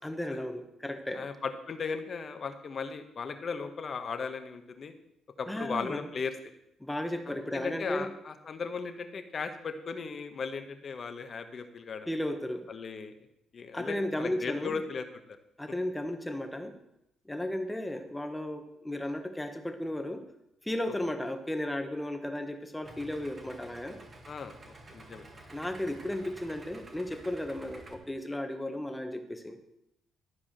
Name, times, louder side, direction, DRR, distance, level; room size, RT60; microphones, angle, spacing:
voice 1, 0.0-1.3 5.5-6.1 6.8-8.1 12.1-12.7 13.7-14.8 15.6-16.7 17.2-20.2 20.6-24.0 25.5-29.6, left 1 dB, 10° left, 7 dB, 1.3 m, -34 dB
voice 2, 1.1-4.9 5.4-6.3 7.3-12.1 12.7-13.1 13.5-15.0 24.3-25.3, left 5 dB, 45° left, 8 dB, 1.2 m, -37 dB
Idling, 22.8-27.9, right 2 dB, 35° right, 1.8 m, -50 dB
13.0 x 4.8 x 7.5 m, 0.82 s
cardioid pair, 90°, 0 cm